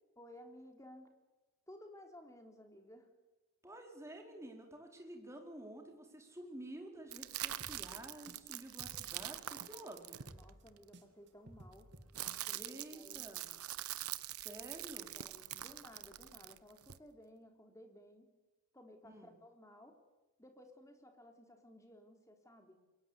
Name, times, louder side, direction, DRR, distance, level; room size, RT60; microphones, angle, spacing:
voice 1, 0.2-1.1 1.7-3.1 10.3-13.3 15.1-18.3 18.7-20.0 20.4-22.8, left 1 dB, 15° left, 5 dB, 3.5 m, -57 dB
voice 2, 3.6-10.2 12.5-13.5 14.3-15.1 19.0-19.3, right 1 dB, 15° right, 2 dB, 4.3 m, -50 dB
sound 1, 7.1-10.8 11.7-17.0, right 13 dB, 85° right, 1.1 m, -44 dB
sound 2, 7.6-10.0 10.3-12.6, right 1 dB, 50° right, 2.8 m, -57 dB
28.5 x 22.5 x 8.3 m, 1.1 s
head